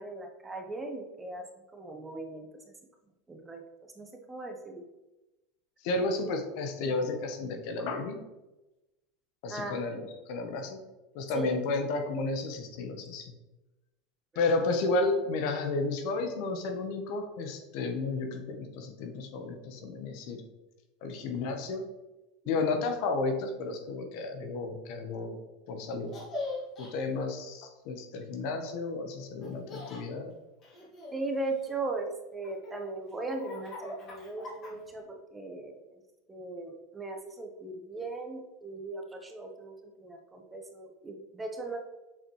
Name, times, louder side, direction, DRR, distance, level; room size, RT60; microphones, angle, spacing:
voice 1, 0.0-1.5 1.7-2.7 3.3-3.6 3.9-4.8 9.5-9.8 11.3-11.5 14.3-14.6 22.4-22.6 31.1-36.0 36.3-41.8, right 2 dB, 15° right, 3 dB, 1.0 m, -38 dB
voice 2, 5.8-8.2 9.4-10.8 11.1-13.3 14.3-20.4 21.0-21.8 22.5-25.4 25.7-26.1 26.8-30.3, left 3 dB, 65° left, 5 dB, 1.1 m, -32 dB
Laughter, 26.1-26.9 29.4-30.0 30.6-31.9 32.4-35.0, left 2 dB, 40° left, 2.0 m, -41 dB
7.4 x 4.2 x 3.2 m, 1.0 s
supercardioid pair, 120°, 0 cm